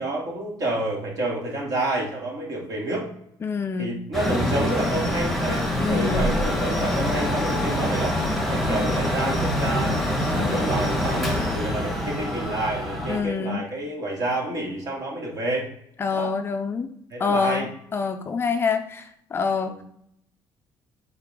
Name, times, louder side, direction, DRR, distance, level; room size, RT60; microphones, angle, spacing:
voice 1, 0.0-3.1 3.8-10.0 10.2-15.7 16.1-16.3 17.1-17.7 19.7-19.8, right 2 dB, 45° right, -2 dB, 2.7 m, -29 dB
voice 2, 3.4-4.0 5.8-6.3 10.4-10.8 13.1-13.7 16.0-16.9 17.2-19.8, left 5 dB, 25° left, 7 dB, 0.5 m, -26 dB
Mechanical fan, 4.1-13.2, left 1 dB, ahead, 1.5 m, -25 dB
8.1 x 4.8 x 3.8 m, 0.71 s
cardioid pair, 150°, 9 cm